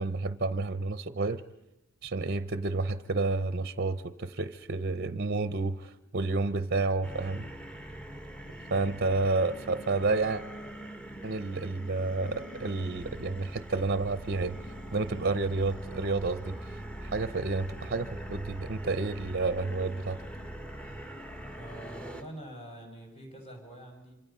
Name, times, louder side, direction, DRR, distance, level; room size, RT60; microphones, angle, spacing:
voice 1, 0.0-1.4 2.0-7.5 8.7-10.4 11.2-14.6 14.9-16.6 17.1-20.2, right 3 dB, 45° right, 13 dB, 0.7 m, -30 dB
sound 1, 7.0-22.2, right 1 dB, 5° left, 1.3 m, -42 dB
voice 2, 21.5-24.2, right 1 dB, 30° left, 2 dB, 5.4 m, -45 dB
26.5 x 25.5 x 5.5 m, 0.93 s
head